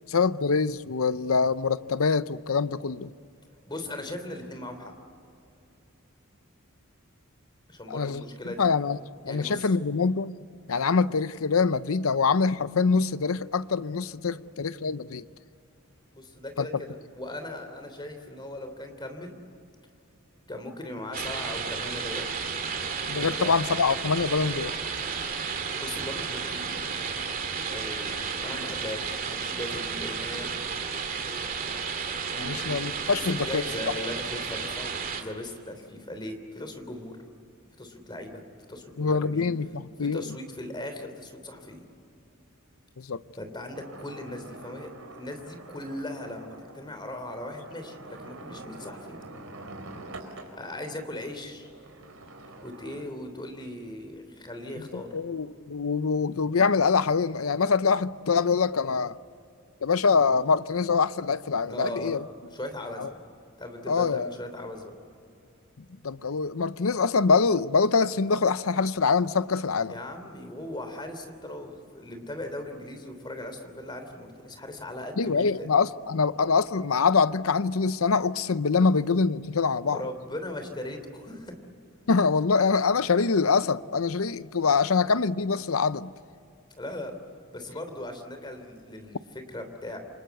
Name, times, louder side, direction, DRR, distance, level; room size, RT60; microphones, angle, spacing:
voice 1, 0.1-3.1 7.9-8.2 8.6-9.0 9.2-10.4 10.7-15.2 16.6-16.7 23.1-24.7 32.4-33.6 39.0-40.4 43.0-43.2 54.9-59.2 59.8-62.2 63.0-63.1 63.9-64.3 65.8-69.9 75.2-80.0 82.1-86.1, left 5 dB, 85° left, 0.7 m, -24 dB
voice 2, 3.7-4.9 7.7-8.7 9.2-9.7 16.1-19.4 20.5-22.4 23.1-23.5 25.8-27.0 27.7-30.5 32.4-32.8 33.0-37.2 37.8-38.4 38.7-39.5 40.0-41.8 43.3-49.2 50.5-51.7 52.6-55.1 61.7-63.2 63.6-64.9 69.9-75.7 79.9-81.6 86.8-87.2 87.5-90.0, left 1 dB, 20° left, 3.1 m, -38 dB
sound 1, 21.1-35.2, right 5 dB, 40° right, 2.5 m, -32 dB
sound 2, 43.7-50.6 51.4-53.0, right 2 dB, 75° right, 4.1 m, -45 dB
28.5 x 25.5 x 8.3 m
head